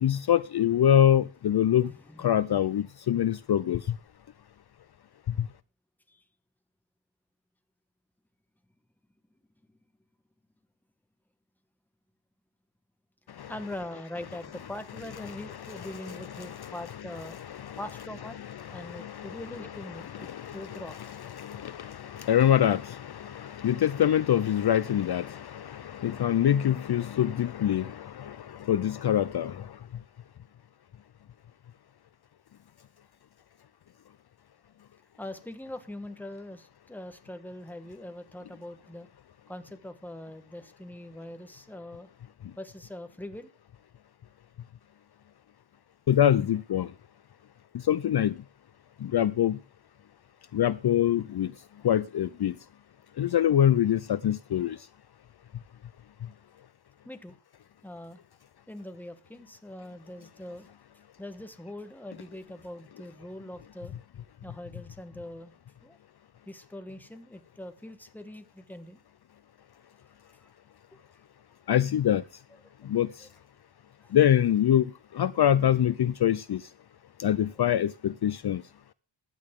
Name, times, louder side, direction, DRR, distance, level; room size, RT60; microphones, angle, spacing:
voice 1, 0.0-1.9 2.2-4.0 5.4-5.5 13.4-13.5 15.5-16.7 17.5-17.8 18.6-19.4 19.9-20.8 21.3-29.7 46.1-46.9 47.9-48.4 49.0-49.6 50.5-51.5 51.8-52.5 53.2-54.8 71.7-72.2 72.8-73.1 74.1-76.6 77.2-78.6, left 10 dB, 60° left, 0.5 m, -25 dB
voice 2, 1.8-2.2 6.1-6.2 13.3-17.4 17.8-18.4 18.7-21.0 35.2-39.1 39.5-42.1 42.6-43.5 57.0-57.4 57.8-58.2 58.7-60.7 61.2-63.9 64.4-65.5 65.8-66.0 66.4-69.0 70.4-70.5 70.9-71.0 72.6-72.7 73.2-73.3 74.0-74.1, left 1 dB, 5° left, 1.2 m, -42 dB
15.5 x 10.5 x 3.7 m
wide cardioid pair, 160°, 45 cm